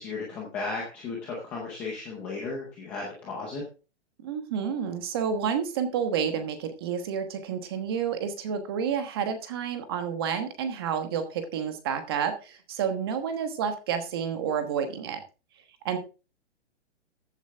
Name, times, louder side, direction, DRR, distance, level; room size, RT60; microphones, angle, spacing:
voice 1, 0.0-3.6, left 3 dB, 5° left, -3 dB, 0.6 m, -35 dB
voice 2, 4.2-15.2 15.8-16.0, right 7 dB, 20° right, 8 dB, 1.2 m, -30 dB
14.5 x 8.1 x 3.4 m, 0.32 s
hypercardioid pair, 180°, 35 cm